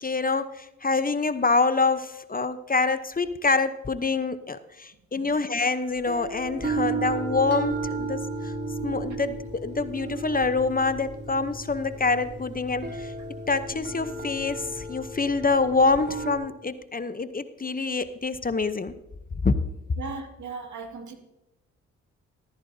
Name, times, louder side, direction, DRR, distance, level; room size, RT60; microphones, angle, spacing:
voice 1, 0.0-8.5 8.8-13.1 13.5-18.9 19.4-19.5, left 3 dB, 30° left, 12 dB, 0.9 m, -26 dB
sound 1, 6.0-16.4, right 3 dB, 35° right, 3.2 m, -34 dB
voice 2, 20.0-21.1, right 4 dB, 70° right, 4 dB, 2.2 m, -37 dB
14.0 x 13.5 x 2.8 m, 0.94 s
supercardioid pair, 50°, 31 cm